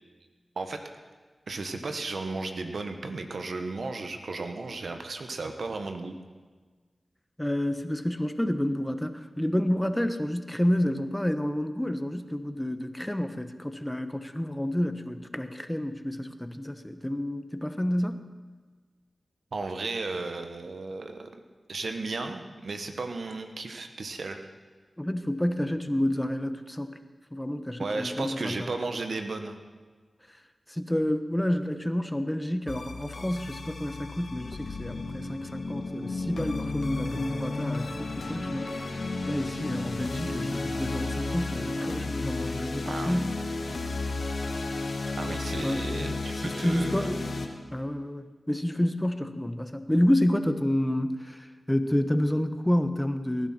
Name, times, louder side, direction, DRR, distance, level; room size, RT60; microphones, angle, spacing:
voice 1, 1.5-6.1 19.5-21.3 21.7-24.4 27.8-29.6 42.8-43.2 45.2-47.2, right 3 dB, 80° right, 6 dB, 1.2 m, -34 dB
voice 2, 7.4-18.2 25.0-27.0 27.3-28.7 30.7-38.7 39.2-43.4 45.6-45.8 46.4-47.2 47.7-53.5, left 1 dB, 10° left, 9 dB, 1.1 m, -29 dB
sound 1, 32.7-47.5, left 3 dB, 75° left, 1.5 m, -33 dB
19.0 x 11.5 x 4.4 m, 1.4 s
cardioid pair, 40°, 0 cm